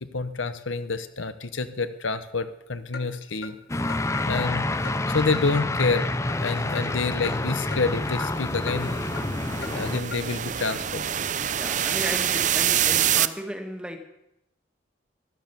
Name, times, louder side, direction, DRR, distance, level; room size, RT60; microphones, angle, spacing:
voice 1, 0.0-3.6 4.3-4.7 5.1-6.1 6.4-9.0 9.7-11.1, left 4 dB, 85° left, 11 dB, 1.0 m, -28 dB
Clock, 2.9-3.1 3.4-3.5 3.9-4.0 4.4-4.5 4.8-5.0 5.3-5.4 5.8-5.9 6.3-6.4 6.8-6.9 7.2-7.4 7.7-7.8 8.2-8.3 8.7-8.8 9.2-9.3 9.6-9.7 10.1-10.2, left 5 dB, 55° left, 1.3 m, -37 dB
sound 1, 3.7-10.0, left 2 dB, 15° left, 0.5 m, -28 dB
sound 2, 7.3-13.3, right 10 dB, 40° right, 0.5 m, -26 dB
voice 2, 11.6-14.0, equal, 5° right, 5 dB, 1.5 m, -34 dB
15.5 x 12.0 x 6.9 m, 0.84 s
head